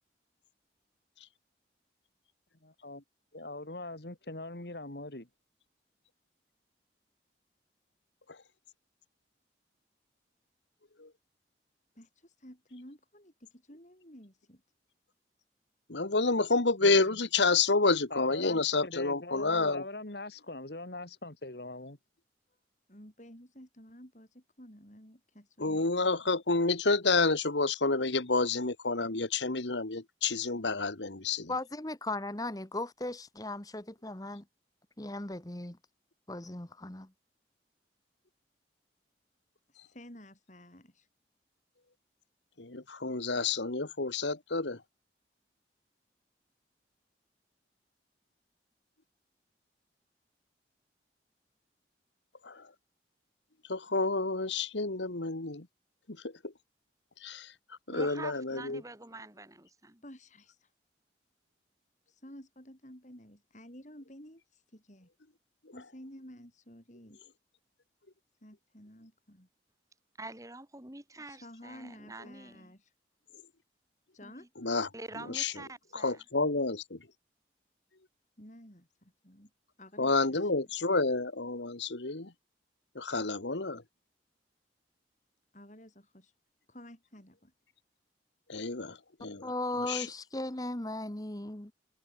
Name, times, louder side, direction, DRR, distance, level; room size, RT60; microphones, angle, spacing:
voice 1, 2.6-3.0 3.3-5.3 16.8-17.2 18.1-22.0, left 2 dB, 65° left, 2.5 m, -42 dB
voice 2, 11.9-14.6 22.9-25.9 39.7-41.1 60.0-60.7 62.1-65.1 65.7-67.2 68.4-69.5 71.3-72.9 74.1-74.5 78.4-79.5 79.8-80.5 85.5-86.3 86.7-87.5, equal, 40° left, 7.9 m, -52 dB
voice 3, 15.9-19.8 25.6-31.5 42.6-44.8 52.5-52.6 53.7-55.6 57.2-57.5 57.9-58.8 74.6-74.9 75.3-75.5 75.9-77.0 80.0-82.3 83.0-83.8 88.5-89.5 89.9-90.0, left 3 dB, 85° left, 1.9 m, -29 dB
voice 4, 31.5-34.4 35.0-35.8 36.3-37.1 89.4-91.7, left 2 dB, 20° left, 1.3 m, -37 dB
voice 5, 57.9-60.0 70.2-72.7 74.2-74.5 74.9-76.2, right 2 dB, 20° right, 2.6 m, -46 dB
head